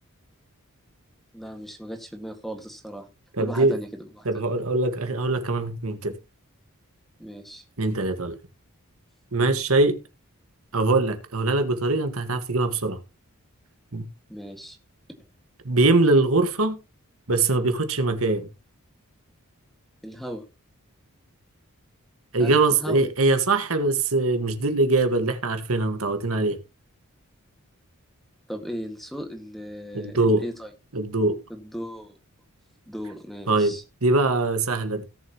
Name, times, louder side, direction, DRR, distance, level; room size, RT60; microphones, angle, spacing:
voice 1, 1.3-3.1 3.4-4.3 7.2-7.6 14.3-14.8 20.0-20.4 22.4-22.5 22.8-23.0 28.5-30.7 31.5-32.1 32.9-33.8, equal, ahead, 1.9 m, -36 dB
voice 2, 3.4-3.8 4.2-6.1 7.8-8.3 9.3-10.0 10.7-13.0 13.9-14.0 15.6-16.8 17.3-18.5 22.3-26.6 29.9-30.4 30.9-31.4 33.5-33.7 34.0-35.0, right 2 dB, 75° right, 1.7 m, -22 dB
17.5 x 7.1 x 3.0 m
head